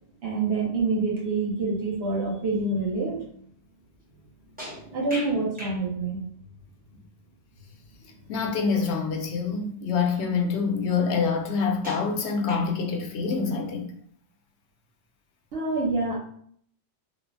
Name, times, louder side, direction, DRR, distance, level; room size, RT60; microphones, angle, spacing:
voice 1, 0.2-3.2 4.9-6.2 15.5-16.2, right 3 dB, 60° right, -2 dB, 0.9 m, -26 dB
sound 1, 4.6-5.8 8.7-8.8 9.5-9.6 11.8-12.9, equal, 10° right, 0.6 m, -40 dB
voice 2, 8.3-13.9, left 5 dB, 70° left, 3 dB, 0.8 m, -26 dB
3.2 x 2.1 x 2.5 m, 0.62 s
omnidirectional pair, 1.2 m